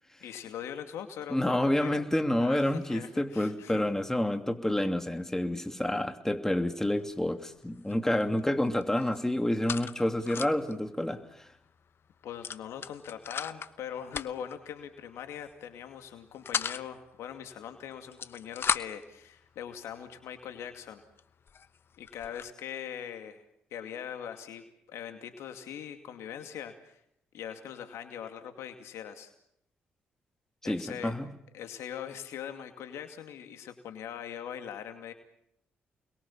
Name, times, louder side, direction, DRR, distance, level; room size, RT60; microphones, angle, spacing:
voice 1, 0.2-2.0 2.4-3.9 12.2-21.0 22.0-23.4 23.7-27.0 27.3-29.3 30.6-31.1 31.5-35.1, left 9 dB, 75° left, 7 dB, 2.5 m, -41 dB
voice 2, 1.3-11.5 30.6-31.3, left 1 dB, 10° left, 6 dB, 2.7 m, -29 dB
sound 1, 7.0-7.3 7.6-8.4 8.7-10.7 11.1-11.2 11.5-11.7 12.4-13.7 14.1-14.6 15.3-15.6 16.0-16.8 17.9-19.1 19.8-19.9 20.5-20.6 21.2-21.3 21.5-22.5, left 7 dB, 55° left, 0.9 m, -36 dB
29.0 x 22.0 x 7.4 m, 0.77 s
hypercardioid pair, 45°, 5 cm